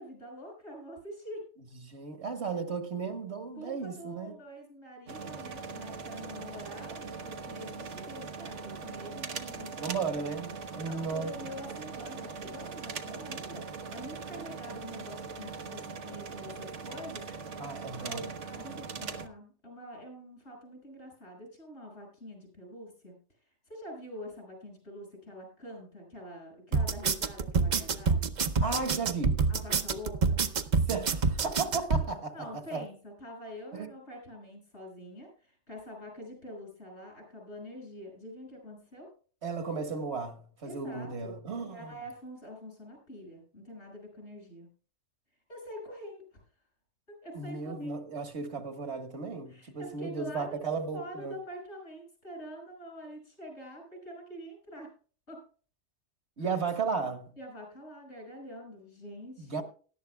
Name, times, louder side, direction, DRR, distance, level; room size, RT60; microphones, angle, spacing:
voice 1, 0.0-1.5 3.6-9.9 10.9-17.3 18.0-23.2 23.7-28.3 29.5-30.4 32.3-39.1 40.6-44.7 45.5-46.4 47.1-48.0 49.5-54.9 55.3-55.4 56.4-56.6 57.4-59.6, equal, 75° left, 6.7 m, -46 dB
voice 2, 1.8-4.4 9.8-11.3 17.6-18.2 28.6-29.4 30.9-32.3 32.7-32.8 33.7-33.9 39.4-41.9 47.3-51.4 56.4-57.3 59.4-59.6, right 4 dB, 70° right, 1.7 m, -35 dB
sound 1, 5.1-19.3, right 5 dB, 85° right, 1.4 m, -41 dB
sound 2, 26.7-32.0, right 5 dB, 45° right, 0.7 m, -27 dB
18.0 x 12.5 x 2.3 m
omnidirectional pair, 1.2 m